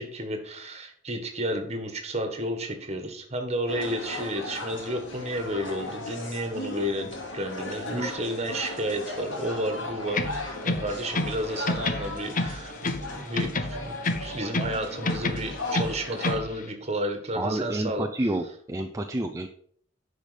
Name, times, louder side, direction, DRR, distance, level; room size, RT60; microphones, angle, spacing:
voice 1, 0.0-18.1, equal, 35° right, 6 dB, 1.6 m, -32 dB
sound 1, 3.7-16.4, left 2 dB, 80° left, 2.3 m, -37 dB
sound 2, 10.1-11.4 11.7-13.1 13.4-14.8 15.1-16.5, left 2 dB, 45° left, 0.8 m, -29 dB
voice 2, 17.3-19.5, right 1 dB, 15° right, 4 dB, 0.5 m, -29 dB
10.5 x 5.0 x 5.2 m, 0.62 s
head